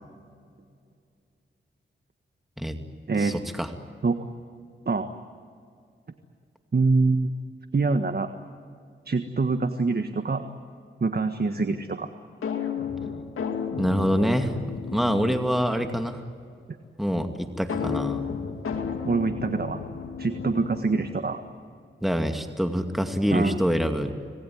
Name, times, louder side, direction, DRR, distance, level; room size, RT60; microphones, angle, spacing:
voice 1, 3.2-3.7 13.8-16.2 17.0-18.2 22.0-24.1, equal, ahead, 5 dB, 2.4 m, -25 dB
voice 2, 6.7-7.3 7.7-8.3 9.1-10.4 11.0-12.1 19.0-19.8 20.2-21.4 23.3-23.6, right 3 dB, 50° right, 8 dB, 1.6 m, -25 dB
sound 1, 12.4-16.1 17.7-21.3, left 6 dB, 85° left, 2.5 m, -33 dB
26.5 x 20.0 x 9.5 m, 2.3 s
cardioid pair, 45°, 21 cm